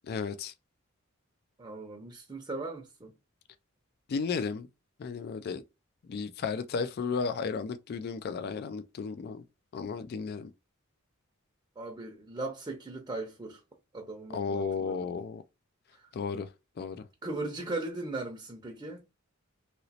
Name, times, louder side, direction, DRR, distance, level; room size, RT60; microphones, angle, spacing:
voice 1, 0.0-0.5 4.1-4.7 5.0-5.6 6.1-9.4 9.7-10.5 14.3-15.4 16.1-16.5 16.8-17.0, left 5 dB, 50° left, 0.3 m, -34 dB
voice 2, 1.6-3.1 11.8-13.6 13.9-15.1 15.9-16.1 17.2-19.0, right 2 dB, 20° right, 0.6 m, -38 dB
3.0 x 2.9 x 2.7 m
head